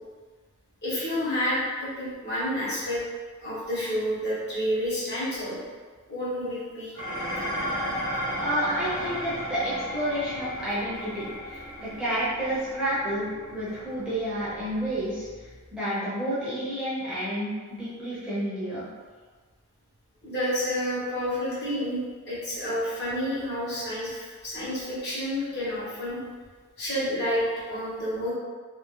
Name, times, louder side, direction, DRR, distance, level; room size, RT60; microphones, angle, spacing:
voice 1, 0.8-3.0 3.4-5.6 6.1-6.9 20.2-22.0 22.3-26.2 26.8-28.3, equal, 50° left, -9 dB, 1.3 m, -29 dB
Dishes pots and pans, 6.9-15.8, equal, 70° left, 1.0 m, -35 dB
voice 2, 8.4-15.3 15.7-17.5 17.8-18.8, right 1 dB, 5° right, -11 dB, 0.8 m, -30 dB
2.8 x 2.8 x 2.9 m, 1.5 s
head